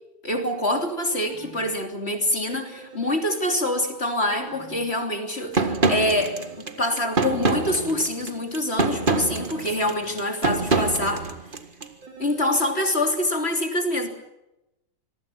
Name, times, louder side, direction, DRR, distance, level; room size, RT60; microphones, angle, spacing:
voice 1, 0.2-11.3 12.2-14.1, left 1 dB, 20° left, 4 dB, 3.1 m, -25 dB
sound 1, 0.7-1.7 2.5-4.9 5.7-8.0 8.8-11.3 12.0-12.8, right 5 dB, 30° right, 4.2 m, -44 dB
sound 2, 5.5-11.9, right 3 dB, 75° right, 0.4 m, -25 dB
26.0 x 23.0 x 5.9 m, 0.90 s
omnidirectional pair, 3.9 m